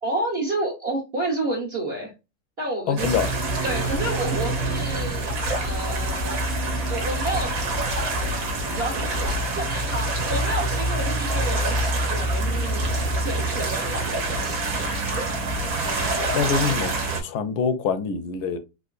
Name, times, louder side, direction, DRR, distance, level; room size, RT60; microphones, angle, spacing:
voice 1, 0.0-2.1 2.6-3.2 3.6-5.3 5.6-6.5 6.9-7.6 8.0-12.9 13.2-14.7, right 2 dB, 40° right, 1.3 m, -30 dB
voice 2, 2.9-3.3 16.3-16.9 17.2-18.6, left 6 dB, 75° left, 1.2 m, -24 dB
sound 1, 3.0-17.2, right 2 dB, 60° right, 1.4 m, -26 dB
3.7 x 2.9 x 2.4 m
omnidirectional pair, 1.8 m